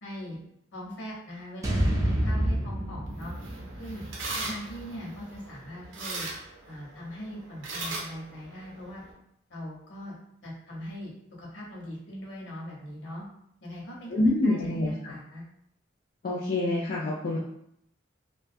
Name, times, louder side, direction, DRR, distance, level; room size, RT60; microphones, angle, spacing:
voice 1, 0.0-0.4 0.7-3.3 3.8-4.0 4.4-6.3 6.7-9.0 9.5-10.2 10.4-11.1 11.4-13.2 13.6-14.1 14.4-15.4, equal, 75° left, -4 dB, 0.9 m, -40 dB
sound 1, 1.6-5.9, equal, 15° right, 0.4 m, -30 dB
Grater slide, 3.1-9.1, right 2 dB, 85° right, 0.6 m, -39 dB
voice 2, 14.1-15.1 16.2-17.4, left 2 dB, 50° left, -5 dB, 0.4 m, -26 dB
2.4 x 2.3 x 2.5 m, 0.74 s
head